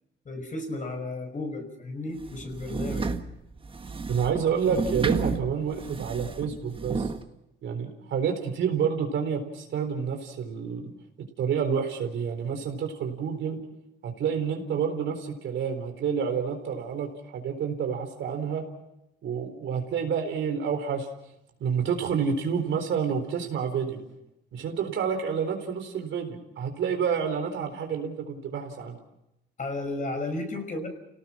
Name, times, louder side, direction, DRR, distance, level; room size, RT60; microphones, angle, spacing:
voice 1, 0.3-3.1 29.6-30.9, left 2 dB, 40° left, 5 dB, 5.8 m, -33 dB
sound 1, 2.2-7.2, right 4 dB, 25° right, 1.4 m, -32 dB
voice 2, 4.1-7.1 7.6-10.9 11.4-13.6 14.0-18.6 19.2-21.1 21.6-24.0 24.5-29.0, right 7 dB, 75° right, 4 dB, 4.2 m, -29 dB
29.5 x 18.0 x 6.2 m, 0.86 s
cardioid pair, 90°, 20 cm